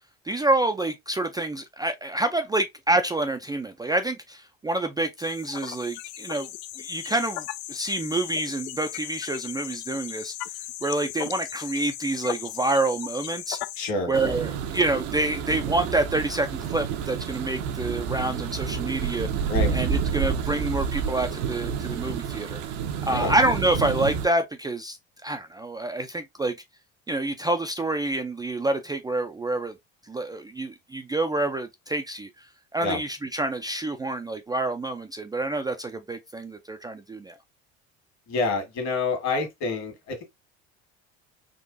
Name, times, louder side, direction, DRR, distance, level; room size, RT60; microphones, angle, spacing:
voice 1, 0.2-6.5 6.8-10.3 10.8-13.6 14.1-19.3 19.7-22.6 23.0-25.0 25.2-26.5 27.1-29.7 30.1-32.5 32.7-37.4, right 2 dB, 10° right, 0.4 m, -27 dB
sound 1, 5.2-13.9, left 14 dB, 75° left, 0.5 m, -37 dB
voice 2, 13.8-14.1 19.5-19.7 23.1-23.3 32.8-33.0 38.3-40.2, left 3 dB, 55° left, 1.8 m, -27 dB
sound 2, 14.1-24.3, right 6 dB, 65° right, 0.7 m, -29 dB
3.8 x 2.5 x 2.5 m
hypercardioid pair, 80°, 32 cm